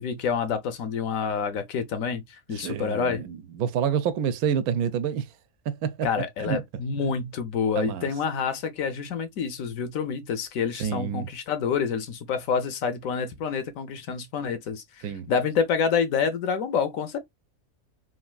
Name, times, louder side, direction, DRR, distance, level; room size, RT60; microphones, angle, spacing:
voice 1, 0.0-3.2 6.0-17.2, left 6 dB, 75° left, 1.0 m, -28 dB
voice 2, 2.6-5.2 5.7-6.1 6.4-6.6 7.8-8.1 10.8-11.3 15.0-15.3, right 8 dB, 80° right, 1.0 m, -28 dB
3.2 x 2.4 x 2.3 m
omnidirectional pair, 1.5 m